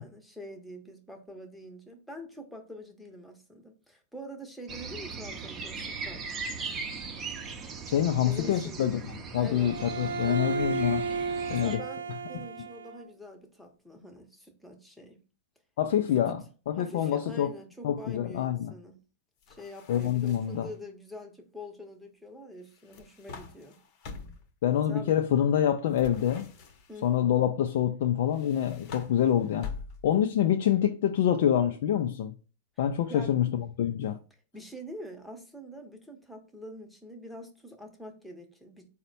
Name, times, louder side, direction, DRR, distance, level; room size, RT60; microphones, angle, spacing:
voice 1, 0.0-6.4 8.2-8.9 9.4-9.7 10.2-10.5 11.5-15.2 16.3-16.4 16.8-19.0 19.5-23.8 24.9-25.2 26.9-27.2 33.1-33.4 34.5-38.9, left 1 dB, ahead, 0.8 m, -45 dB
sound 1, 4.7-11.8, right 4 dB, 30° right, 0.6 m, -39 dB
voice 2, 7.9-9.0 9.3-11.1 11.5-11.8 15.8-17.5 17.8-18.7 19.9-20.7 24.6-26.5 27.0-29.7 30.0-32.3 32.8-34.2, left 10 dB, 65° left, 0.3 m, -26 dB
Bowed string instrument, 9.6-13.0, right 5 dB, 90° right, 0.4 m, -33 dB
sound 2, 19.4-20.7 22.7-24.5 25.9-27.1 28.3-30.3, left 5 dB, 45° left, 0.8 m, -45 dB
4.1 x 2.1 x 4.0 m
hypercardioid pair, 115°, 0 cm